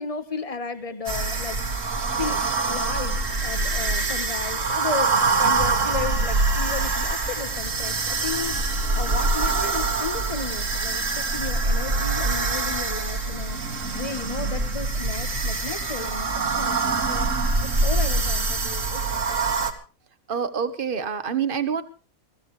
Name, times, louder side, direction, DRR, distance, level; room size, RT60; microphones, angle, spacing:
voice 1, 0.0-1.6 2.2-2.4 2.7-13.6 13.9-17.3 17.6-19.3, left 5 dB, 25° left, 10 dB, 1.6 m, -34 dB
sound 1, 1.1-19.7, right 3 dB, 60° right, 2.4 m, -25 dB
voice 2, 20.3-21.8, right 7 dB, 35° right, 11 dB, 1.5 m, -26 dB
23.5 x 16.0 x 3.4 m, 0.35 s
omnidirectional pair, 1.5 m